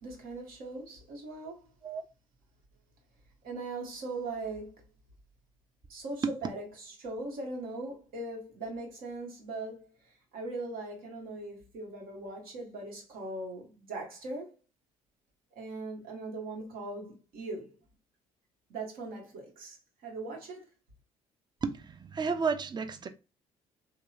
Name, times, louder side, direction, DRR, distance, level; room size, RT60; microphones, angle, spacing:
voice 1, 0.0-1.7 3.4-4.9 5.9-14.5 15.5-17.8 18.7-19.8 20.0-20.7, right 2 dB, 65° right, 1.1 m, -40 dB
voice 2, 21.6-23.1, right 5 dB, 25° right, 0.4 m, -32 dB
2.9 x 2.1 x 2.3 m
hypercardioid pair, 55°, 16 cm